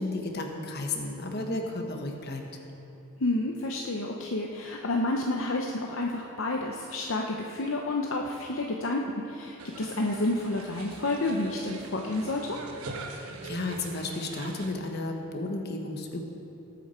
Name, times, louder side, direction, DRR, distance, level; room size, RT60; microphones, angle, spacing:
voice 1, 0.0-2.4 13.1-16.2, left 2 dB, 50° left, 3 dB, 1.3 m, -33 dB
voice 2, 3.2-12.6, left 2 dB, 65° left, 0 dB, 0.8 m, -30 dB
sound 1, 9.6-14.7, right 3 dB, 85° right, 1.2 m, -43 dB
18.5 x 8.3 x 4.4 m, 2.8 s
head